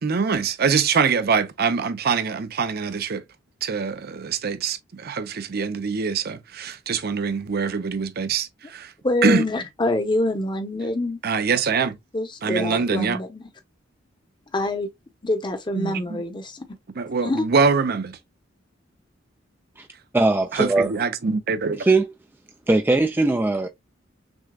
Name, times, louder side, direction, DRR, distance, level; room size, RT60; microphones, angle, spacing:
voice 1, 0.0-3.2 3.6-8.9 9.2-9.4 11.2-12.0 12.4-13.2 15.8-16.2 17.0-18.2 20.5-21.9, right 5 dB, 55° right, 0.6 m, -24 dB
voice 2, 9.0-11.2 12.1-13.4 14.5-14.9 15.2-16.7 17.2-17.5, left 1 dB, 25° left, 0.8 m, -25 dB
voice 3, 20.1-20.9 21.8-22.1 22.7-23.7, right 2 dB, 10° right, 0.3 m, -20 dB
6.1 x 2.2 x 2.3 m
head